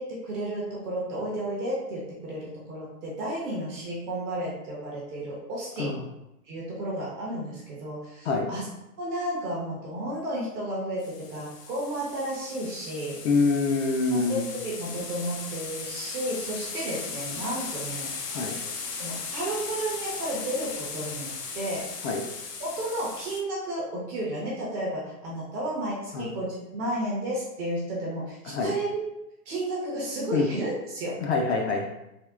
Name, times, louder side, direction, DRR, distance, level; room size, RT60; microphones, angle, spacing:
voice 1, 0.0-6.0 6.5-8.7 9.0-13.2 14.1-18.5 19.0-21.3 21.5-21.9 22.6-28.9 29.5-31.2, right 1 dB, 20° right, -5 dB, 0.6 m, -32 dB
sound 1, 11.0-23.4, left 5 dB, 85° left, 0.8 m, -37 dB
voice 2, 13.2-14.5 18.3-18.6 22.0-22.2 26.1-26.3 28.5-28.7 30.3-30.5 31.2-31.9, left 4 dB, 45° left, 1 dB, 0.5 m, -25 dB
3.5 x 2.2 x 3.5 m, 0.89 s
hypercardioid pair, 140°, 47 cm